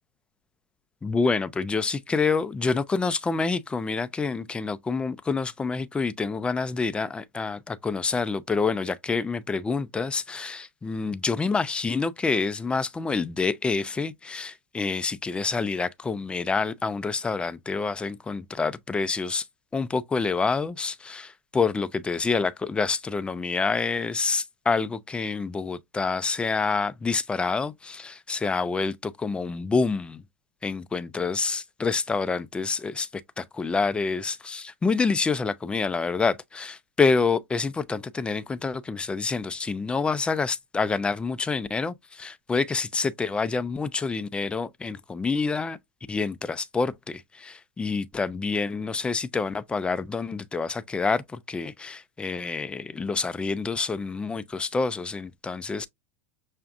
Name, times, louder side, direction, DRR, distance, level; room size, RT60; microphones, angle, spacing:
voice 1, 1.0-19.4 19.7-30.2 30.6-45.8 46.1-55.9, left 4 dB, 15° left, 0.3 m, -27 dB
5.8 x 2.4 x 2.4 m
hypercardioid pair, 95°, 7 cm